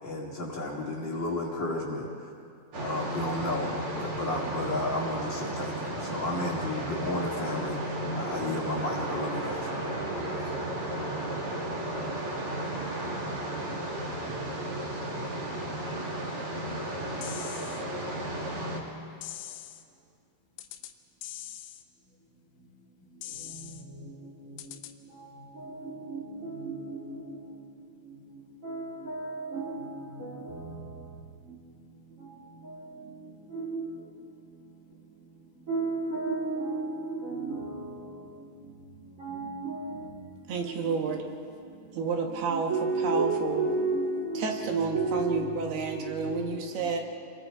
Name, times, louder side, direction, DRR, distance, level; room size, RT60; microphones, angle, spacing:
voice 1, 0.0-2.3 2.8-9.7, left 2 dB, 70° left, 1.0 m, -33 dB
sound 1, 2.7-18.8, right 1 dB, 40° right, 2.4 m, -34 dB
sound 2, 17.2-17.8 19.2-19.8 20.6-20.9 21.2-21.8 23.2-23.8 24.6-24.9, left 13 dB, 85° left, 3.5 m, -42 dB
voice 2, 25.5-27.2 28.6-30.7 32.6-32.7 33.0-33.1 33.5-33.9 35.7-38.0 39.2-40.0 40.6-41.2 42.5-46.5, right 3 dB, 80° right, 0.7 m, -33 dB
voice 3, 40.5-41.2 41.9-42.7 43.0-43.7 44.3-47.0, right 5 dB, 65° right, 3.1 m, -30 dB
28.5 x 22.5 x 4.8 m
omnidirectional pair, 5.7 m